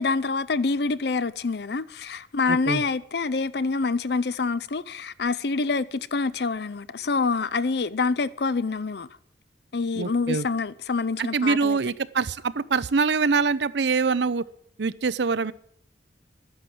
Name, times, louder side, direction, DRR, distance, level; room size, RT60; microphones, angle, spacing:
voice 1, 0.0-9.1 9.7-11.8, left 4 dB, 60° left, 0.6 m, -26 dB
voice 2, 2.5-2.8 10.0-10.4 11.2-14.4 14.8-15.5, right 4 dB, 70° right, 0.6 m, -24 dB
12.0 x 10.5 x 7.8 m
head